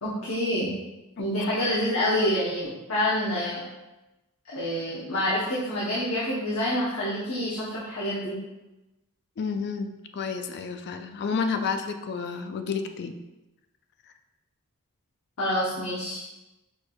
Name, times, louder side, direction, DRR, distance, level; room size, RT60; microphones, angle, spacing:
voice 1, 0.0-0.7 1.2-3.6 4.5-8.4 15.4-16.2, left 1 dB, 75° left, -7 dB, 0.9 m, -27 dB
voice 2, 9.4-13.1, left 5 dB, 50° left, 7 dB, 0.3 m, -30 dB
6.1 x 3.3 x 2.3 m, 1.0 s
head